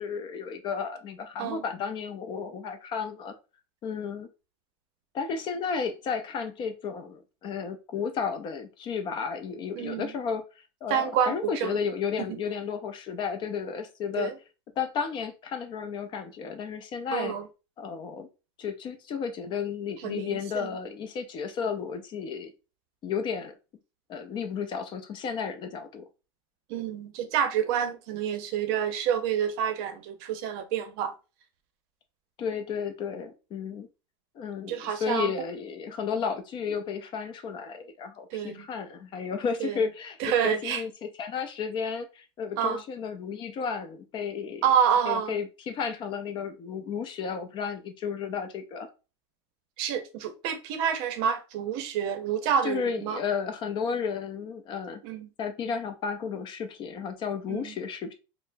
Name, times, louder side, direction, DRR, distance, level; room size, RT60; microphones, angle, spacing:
voice 1, 0.0-3.3 3.8-4.3 5.1-10.4 10.8-14.3 14.8-17.3 17.8-18.3 18.6-22.5 23.0-23.5 24.1-26.0 32.4-33.9 34.3-44.6 45.1-48.9 52.6-55.0 55.4-58.1, left 6 dB, 35° left, 0.5 m, -33 dB
voice 2, 9.8-10.1 10.9-11.8 12.2-12.4 14.2-14.3 17.1-17.4 20.0-20.7 26.7-31.1 34.7-35.3 38.3-38.7 39.6-39.8 40.2-40.8 42.6-42.8 44.6-45.3 49.8-53.2 55.0-55.3 57.5-57.7, right 8 dB, 60° right, 0.6 m, -28 dB
4.2 x 2.0 x 2.5 m
supercardioid pair, 130°, 14 cm